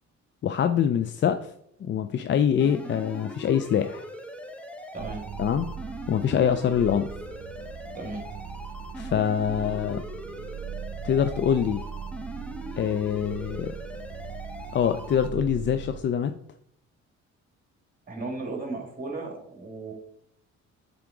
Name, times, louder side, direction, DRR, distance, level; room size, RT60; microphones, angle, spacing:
voice 1, 0.4-1.5 1.8-4.1 5.4-5.7 6.1-7.1 9.0-10.0 11.0-11.8 12.8-13.7 14.7-16.3, left 8 dB, 40° left, 9 dB, 0.4 m, -24 dB
sound 1, 2.6-15.3, equal, 5° left, 0.8 m, -41 dB
voice 2, 4.9-5.2 7.9-8.3 18.1-19.9, right 3 dB, 30° right, 2 dB, 2.1 m, -35 dB
sound 2, 5.0-16.0, right 8 dB, 60° right, 0.8 m, -40 dB
7.4 x 3.6 x 4.8 m, 0.73 s
cardioid pair, 90°, 30 cm